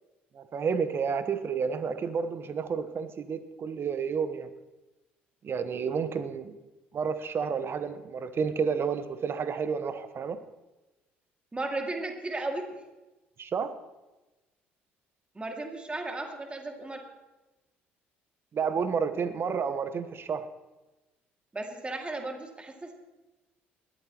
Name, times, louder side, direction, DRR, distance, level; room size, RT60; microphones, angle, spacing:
voice 1, 0.3-4.5 5.4-6.5 6.9-10.4 13.4-13.7 18.5-20.4, right 6 dB, 40° right, 11 dB, 1.2 m, -30 dB
voice 2, 11.5-12.7 15.3-17.0 21.5-23.0, right 2 dB, 20° right, 3 dB, 2.4 m, -35 dB
20.5 x 13.5 x 3.1 m, 1.1 s
hypercardioid pair, 55°, 6 cm